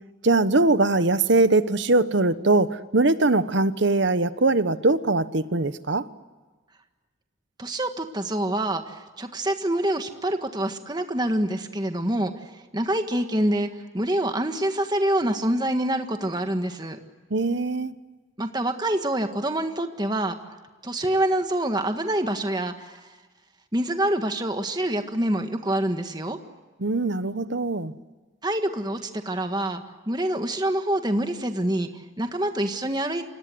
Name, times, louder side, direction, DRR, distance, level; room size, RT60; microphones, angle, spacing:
voice 1, 0.2-6.1 17.3-17.9 26.8-27.9, right 2 dB, 65° right, 13 dB, 1.1 m, -21 dB
voice 2, 7.6-13.7 13.9-17.0 18.4-20.3 20.8-23.0 23.7-26.4 28.4-33.3, right 1 dB, 20° right, 6 dB, 1.6 m, -26 dB
29.0 x 25.5 x 7.8 m, 1.3 s
head